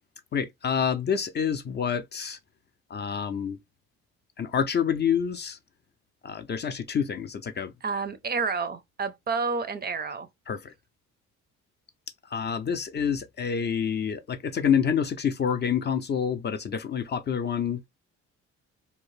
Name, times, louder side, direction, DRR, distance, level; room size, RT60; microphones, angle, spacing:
voice 1, 0.3-2.4 2.9-3.6 4.4-5.6 6.2-7.7 10.5-10.7 12.3-17.8, left 7 dB, 35° left, 0.4 m, -27 dB
voice 2, 7.8-10.3, right 4 dB, 35° right, 0.4 m, -29 dB
2.6 x 2.0 x 3.0 m
cardioid pair, 90°, 30 cm